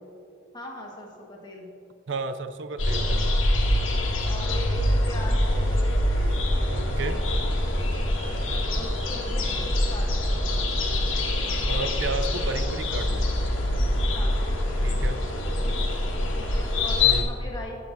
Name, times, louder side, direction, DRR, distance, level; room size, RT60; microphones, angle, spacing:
voice 1, 0.5-1.8 4.3-5.9 8.3-10.5 14.1-14.5 16.3-17.7, left 1 dB, 20° left, -1 dB, 1.5 m, -39 dB
voice 2, 2.1-3.4 6.7-7.2 11.6-13.3 14.8-15.3 17.0-17.2, right 3 dB, 65° right, 10 dB, 0.5 m, -33 dB
sound 1, 2.8-17.2, left 1 dB, 85° left, 1.5 m, -24 dB
16.5 x 6.8 x 2.7 m, 2.5 s
head